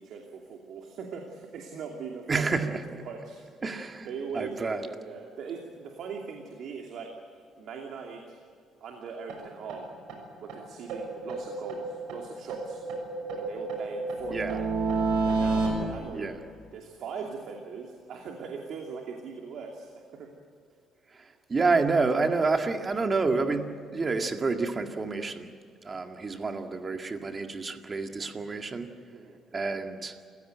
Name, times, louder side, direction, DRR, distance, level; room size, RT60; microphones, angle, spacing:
voice 1, 0.0-3.4 4.0-7.1 7.6-8.4 8.8-9.9 10.4-12.8 13.4-14.6 15.2-20.3 29.1-29.4, right 5 dB, 65° right, 2 dB, 2.7 m, -40 dB
voice 2, 2.3-2.8 3.6-4.1 4.3-4.9 14.3-14.6 16.1-16.3 21.1-25.5 25.8-29.0 29.5-30.2, right 4 dB, 30° right, 5 dB, 2.0 m, -29 dB
sound 1, 9.3-9.4 9.7-9.8 10.1-10.2 10.5-10.6 10.9-12.2 12.5-15.7, right 3 dB, 85° right, 6.5 m, -30 dB
29.0 x 16.5 x 9.2 m, 2.4 s
cardioid pair, 120°, 0 cm